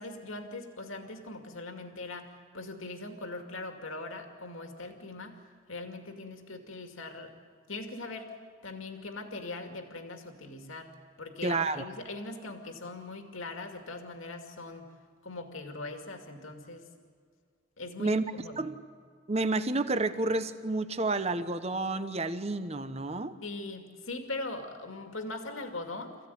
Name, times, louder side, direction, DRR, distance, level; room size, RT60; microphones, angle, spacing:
voice 1, 0.0-7.3 7.7-8.3 8.6-14.9 15.2-16.9 17.8-18.7 23.4-26.2, left 2 dB, 80° left, 5 dB, 2.4 m, -41 dB
voice 2, 11.4-11.8 18.0-18.3 18.6-18.8 19.3-23.4, right 2 dB, 30° right, 11 dB, 1.0 m, -30 dB
26.5 x 16.0 x 9.3 m, 2.1 s
head